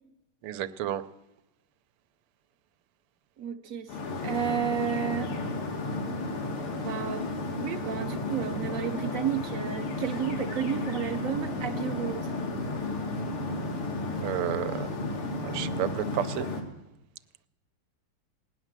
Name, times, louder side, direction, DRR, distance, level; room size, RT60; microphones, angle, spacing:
voice 1, 0.4-1.0 14.2-14.9 15.4-16.5, right 11 dB, 90° right, 12 dB, 1.6 m, -31 dB
voice 2, 3.4-4.0 4.2-5.4 6.8-12.3, right 9 dB, 55° right, 8 dB, 0.9 m, -32 dB
sound 1, 3.9-16.6, left 2 dB, 90° left, 2.9 m, -33 dB
18.5 x 9.9 x 7.4 m, 0.91 s
omnidirectional pair, 2.3 m